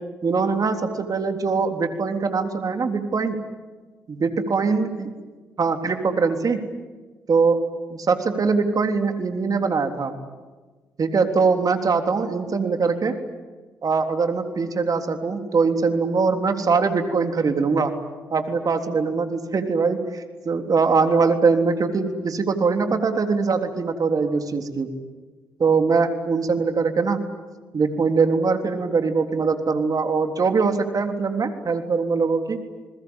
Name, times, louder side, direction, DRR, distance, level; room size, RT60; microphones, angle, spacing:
voice 1, 0.2-3.4 4.1-5.1 5.6-6.6 7.3-7.6 7.9-10.1 11.0-13.1 13.8-17.9 18.3-24.9 25.6-27.2 27.7-32.6, right 4 dB, 50° right, 6 dB, 3.6 m, -22 dB
29.5 x 21.0 x 9.0 m, 1.3 s
hypercardioid pair, 45°, 8 cm